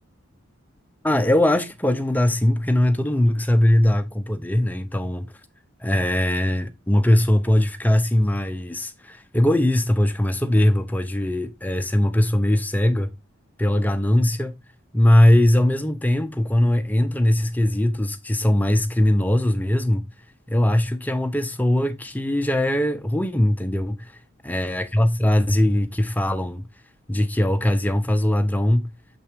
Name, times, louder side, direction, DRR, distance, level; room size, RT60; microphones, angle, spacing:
voice 1, 1.0-5.3 5.8-13.1 13.6-14.5 14.9-20.1 20.5-24.1 24.4-26.7 27.1-28.9, left 1 dB, 10° left, 0.6 m, -20 dB
6.8 x 5.9 x 3.5 m
head